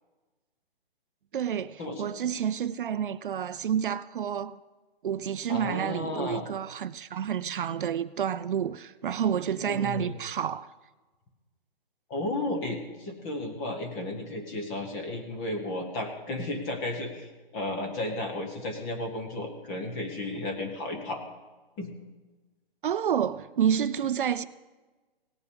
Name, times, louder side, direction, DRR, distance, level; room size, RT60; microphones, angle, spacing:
voice 1, 1.3-4.6 5.0-10.7 22.8-24.5, right 8 dB, 60° right, 0.5 m, -29 dB
voice 2, 5.5-6.4 9.6-10.1 12.1-21.2 21.8-21.9 24.0-24.1, left 2 dB, 10° left, 0.6 m, -33 dB
17.5 x 7.0 x 5.2 m
hypercardioid pair, 160°, 30 cm